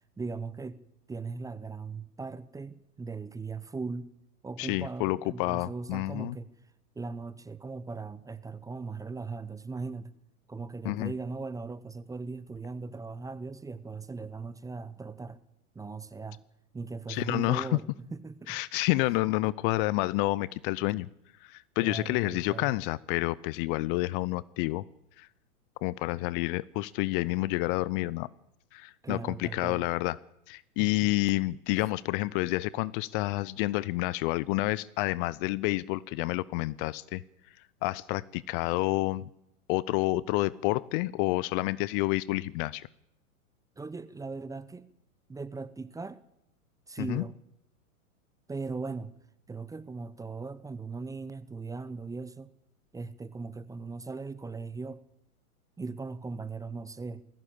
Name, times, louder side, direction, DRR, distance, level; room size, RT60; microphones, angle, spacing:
voice 1, 0.2-0.8 1.1-4.1 4.4-6.5 7.0-10.1 10.5-15.4 15.7-16.4 16.7-18.6 21.8-22.7 29.0-29.9 30.8-30.9 43.8-44.9 45.3-46.2 46.9-47.3 48.5-49.2 49.5-52.5 52.9-55.0 55.8-57.2, right 4 dB, 10° right, 0.8 m, -39 dB
voice 2, 4.6-6.4 10.8-11.1 17.1-17.7 18.5-21.1 21.4-24.8 25.2-25.3 25.8-28.3 28.7-30.2 30.5-37.2 37.8-39.3 39.7-42.9 47.0-47.2, left 19 dB, 35° left, 0.7 m, -29 dB
20.0 x 16.0 x 8.7 m
hypercardioid pair, 110°, 44 cm